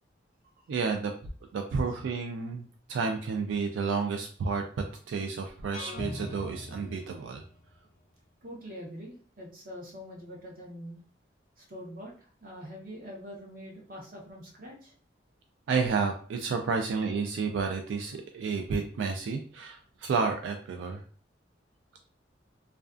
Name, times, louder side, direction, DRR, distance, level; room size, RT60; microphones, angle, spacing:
voice 1, 0.7-1.1 1.5-7.4 15.7-21.0, right 5 dB, 85° right, 4 dB, 0.3 m, -31 dB
sound 1, 5.7-7.7, left 1 dB, 35° left, 0.4 m, -41 dB
voice 2, 8.4-11.0 11.6-14.9, equal, 50° right, -2 dB, 0.8 m, -44 dB
2.4 x 2.2 x 2.4 m, 0.42 s
head